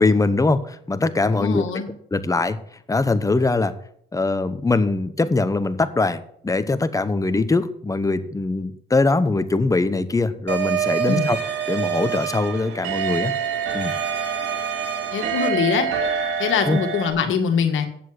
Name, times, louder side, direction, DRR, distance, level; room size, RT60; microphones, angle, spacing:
voice 1, 0.0-1.8 2.1-2.6 2.9-3.7 4.1-11.4 11.7-13.3 13.7-13.9 16.6-16.8, left 3 dB, 15° left, 12 dB, 0.9 m, -22 dB
voice 2, 1.3-1.9 11.1-11.3 15.1-15.9 16.4-17.9, left 7 dB, 75° left, 6 dB, 1.7 m, -23 dB
sound 1, 10.5-15.5, right 9 dB, 60° right, 1.6 m, -28 dB
sound 2, 10.7-17.1, right 6 dB, 85° right, 2.2 m, -28 dB
8.5 x 7.4 x 7.7 m, 0.67 s
cardioid pair, 90°, 20 cm